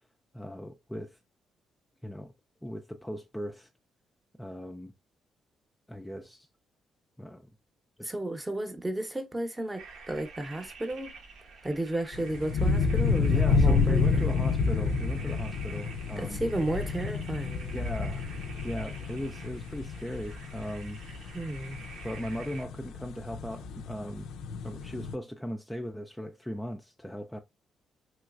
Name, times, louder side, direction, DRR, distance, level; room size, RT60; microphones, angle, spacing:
voice 1, 0.3-1.2 2.0-2.3 2.6-3.7 4.4-4.9 5.9-6.5 7.2-7.5 8.0-8.1 13.3-16.4 17.7-18.3 18.6-21.0 22.0-24.3 24.6-27.4, equal, 5° left, 0.3 m, -38 dB
voice 2, 8.0-11.1 11.6-14.3 16.2-17.8 21.3-21.8, right 1 dB, 15° right, 0.7 m, -33 dB
sound 1, 9.8-22.6, right 4 dB, 75° right, 0.9 m, -48 dB
sound 2, 12.1-25.1, left 4 dB, 85° left, 0.4 m, -29 dB
3.0 x 3.0 x 2.3 m
cardioid pair, 90°, 0 cm